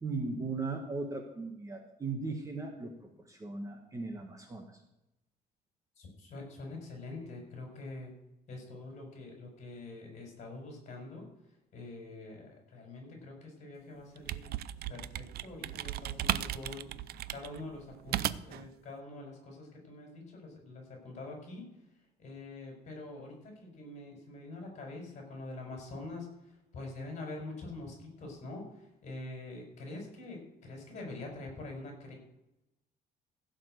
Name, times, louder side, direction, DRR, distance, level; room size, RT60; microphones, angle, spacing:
voice 1, 0.0-2.9 3.3-4.6, right 3 dB, 20° right, 3 dB, 1.3 m, -37 dB
voice 2, 6.0-8.1 8.5-11.3 11.7-14.5 14.9-16.8 17.3-21.7 22.2-32.1, left 2 dB, 40° left, 1 dB, 5.1 m, -45 dB
sound 1, 14.0-18.7, right 13 dB, 60° right, 0.5 m, -36 dB
15.5 x 5.3 x 7.8 m, 0.92 s
cardioid pair, 160°, 18 cm